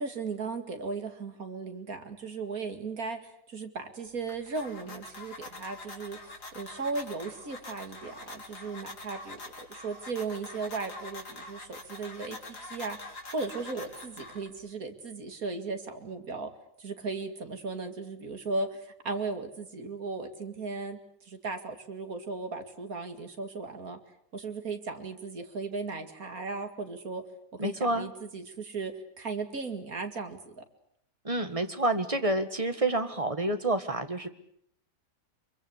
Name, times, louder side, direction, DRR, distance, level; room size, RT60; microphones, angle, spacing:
voice 1, 0.0-3.2 3.5-6.2 6.5-16.5 16.8-24.0 24.3-27.2 27.6-30.6, right 4 dB, 60° right, 6 dB, 2.8 m, -36 dB
sound 1, 4.1-14.7, left 2 dB, 75° left, 4.0 m, -45 dB
voice 2, 27.6-28.1 31.2-34.3, right 2 dB, 20° right, 8 dB, 1.8 m, -28 dB
25.5 x 23.5 x 8.3 m, 0.69 s
omnidirectional pair, 1.7 m